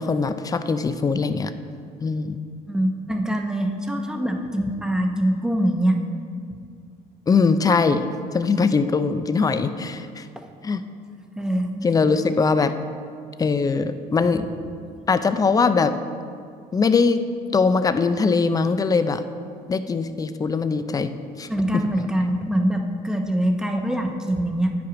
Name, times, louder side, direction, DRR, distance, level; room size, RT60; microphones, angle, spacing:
voice 1, 0.0-1.5 2.0-2.4 7.3-8.1 8.3-10.2 10.6-10.8 11.8-12.7 13.4-14.4 15.1-15.9 16.7-17.2 17.5-19.2 19.7-21.1 21.4-21.9, left 4 dB, 20° left, 11 dB, 0.4 m, -21 dB
voice 2, 2.7-6.0 11.4-11.9 14.3-14.4 21.5-24.7, right 1 dB, 5° right, 3 dB, 0.8 m, -24 dB
9.4 x 5.8 x 5.0 m, 2.3 s
cardioid pair, 110°, 17 cm